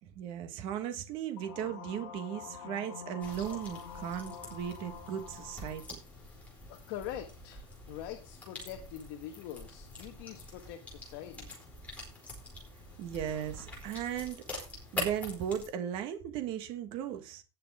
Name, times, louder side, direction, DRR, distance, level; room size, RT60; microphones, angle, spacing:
voice 1, 0.0-6.0 13.0-14.4 14.9-17.4, right 9 dB, 35° right, 1.5 m, -37 dB
sound 1, 1.4-5.9, left 8 dB, 70° left, 2.0 m, -46 dB
sound 2, 3.2-15.7, left 2 dB, 10° left, 4.7 m, -45 dB
voice 2, 6.7-11.6, left 11 dB, 50° left, 1.6 m, -44 dB
18.0 x 6.7 x 3.7 m
supercardioid pair, 175°, 15 cm